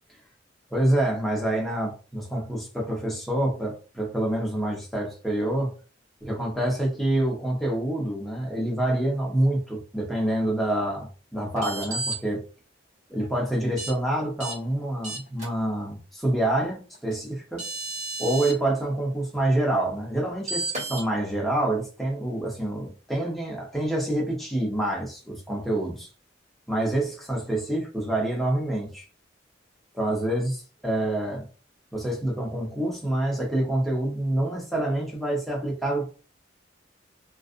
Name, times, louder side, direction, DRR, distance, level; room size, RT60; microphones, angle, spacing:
voice 1, 0.7-5.7 6.2-12.4 13.1-17.7 18.2-26.1 26.7-29.0 29.9-31.4 31.9-36.1, right 1 dB, ahead, -2 dB, 0.8 m, -27 dB
sound 1, 11.6-12.1 13.8-13.9 14.4-14.5 15.0-15.5 17.1-17.2 17.6-18.5 20.5-21.0, right 2 dB, 40° right, 1.4 m, -32 dB
2.4 x 2.4 x 2.5 m, 0.36 s
head